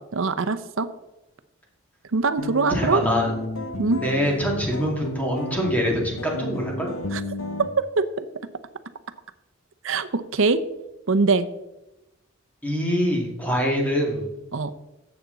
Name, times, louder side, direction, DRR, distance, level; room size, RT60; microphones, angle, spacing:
voice 1, 0.1-0.9 2.1-3.0 3.8-4.0 7.1-7.2 7.8-8.2 9.8-10.6 11.1-11.5 14.5-14.7, right 4 dB, 75° right, 10 dB, 0.7 m, -22 dB
sound 1, 2.4-7.7, left 1 dB, 90° left, 1.1 m, -32 dB
voice 2, 2.7-3.3 4.0-6.9 12.6-14.2, equal, 10° left, -1 dB, 2.3 m, -24 dB
11.5 x 7.9 x 4.0 m, 0.94 s
head